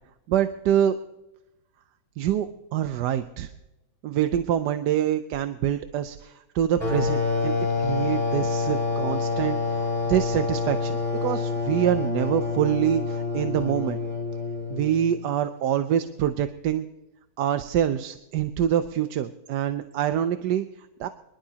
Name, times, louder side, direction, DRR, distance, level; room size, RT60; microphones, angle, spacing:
voice 1, 0.3-1.0 2.2-3.5 4.0-7.5 7.8-14.0 14.7-16.9 17.4-21.1, right 10 dB, 80° right, 10 dB, 1.3 m, -25 dB
sound 1, 6.8-15.2, left 3 dB, 5° right, 6.4 m, -27 dB
24.5 x 12.0 x 2.9 m, 0.96 s
omnidirectional pair, 1.8 m